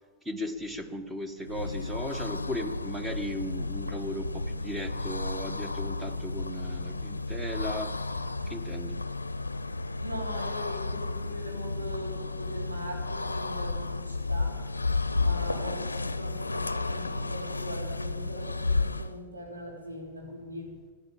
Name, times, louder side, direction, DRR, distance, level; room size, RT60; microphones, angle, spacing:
voice 1, 0.2-7.9 8.5-9.0, equal, 10° right, 9 dB, 1.4 m, -36 dB
sound 1, 1.4-19.2, left 3 dB, 80° left, 0.6 m, -32 dB
voice 2, 10.0-14.6 15.2-20.8, equal, 80° right, -1 dB, 3.9 m, -41 dB
15.5 x 10.0 x 8.6 m, 1.5 s
figure-of-eight pair, 90°, 0 cm